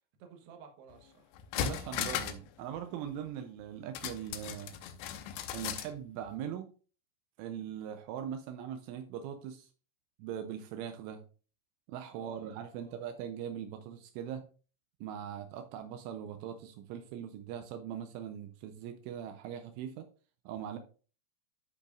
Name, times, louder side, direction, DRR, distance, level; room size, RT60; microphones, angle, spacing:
voice 1, 0.2-1.3 12.1-13.0, right 6 dB, 65° right, 4 dB, 3.0 m, -54 dB
sound 1, 0.9-1.0 1.3-2.5 2.8-2.9 4.0-5.9 6.3-6.4, left 9 dB, 80° left, 2.9 m, -37 dB
voice 2, 1.6-4.7 5.5-6.7 7.4-9.7 10.2-11.2 11.9-14.4 15.0-20.1 20.5-20.8, right 9 dB, 85° right, 7 dB, 3.1 m, -41 dB
13.0 x 5.4 x 2.5 m, 0.37 s
omnidirectional pair, 5.7 m